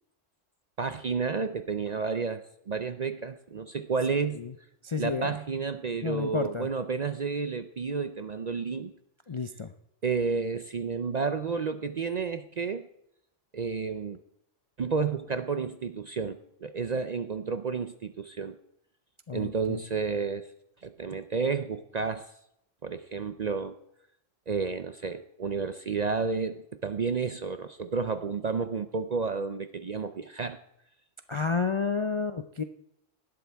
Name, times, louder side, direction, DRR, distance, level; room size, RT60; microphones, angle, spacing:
voice 1, 0.8-4.4 5.0-8.9 10.0-12.9 13.5-14.2 14.8-18.6 19.3-20.5 20.8-22.3 22.8-23.8 24.5-30.6, right 5 dB, 50° right, 10 dB, 0.5 m, -31 dB
voice 2, 4.8-5.4 6.0-6.7 9.3-9.7 19.3-19.8 31.3-32.6, left 5 dB, 45° left, 8 dB, 0.4 m, -31 dB
18.0 x 12.5 x 3.5 m, 0.79 s
omnidirectional pair, 1.3 m